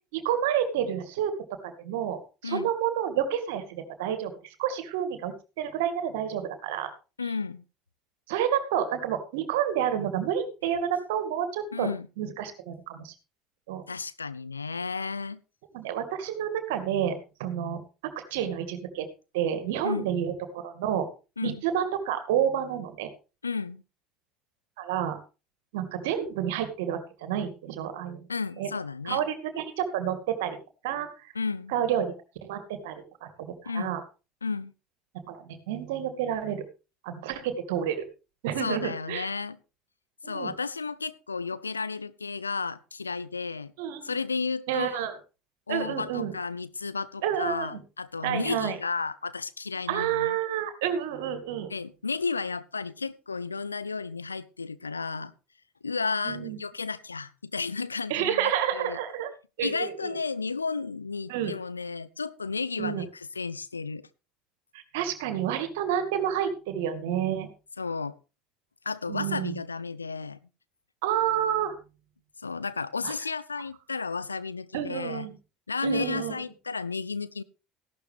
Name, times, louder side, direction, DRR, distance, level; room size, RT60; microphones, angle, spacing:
voice 1, 0.1-1.3 1.6-4.3 4.6-6.9 8.3-11.9 12.2-13.1 13.7-13.8 15.7-17.8 18.3-19.1 19.3-21.1 21.4-23.1 24.8-25.2 25.7-28.2 28.6-28.7 29.1-30.6 30.8-31.3 31.7-32.1 32.4-34.0 35.3-36.6 37.0-38.1 38.4-39.3 40.2-40.5 43.8-44.1 44.7-45.1 45.7-46.3 47.2-47.8 48.2-48.8 49.9-51.7 56.2-56.6 58.1-59.3 59.6-60.2 61.3-61.5 62.8-63.0 64.9-67.5 69.1-69.6 71.0-71.8 73.0-73.1 74.7-75.4 75.8-76.3, right 9 dB, 65° right, 9 dB, 2.2 m, -29 dB
voice 2, 7.2-7.6 11.7-12.1 13.9-15.4 19.8-20.1 21.4-21.6 23.4-23.8 28.3-29.2 31.3-31.7 33.7-34.0 34.4-34.7 38.6-39.6 40.3-43.7 44.0-45.0 45.7-50.4 51.7-55.3 55.8-59.0 59.6-64.1 67.8-68.1 68.8-70.4 72.4-75.3 75.7-77.4, left 4 dB, 90° left, 18 dB, 0.6 m, -33 dB
15.5 x 11.5 x 3.5 m, 0.31 s
figure-of-eight pair, 65°, 0 cm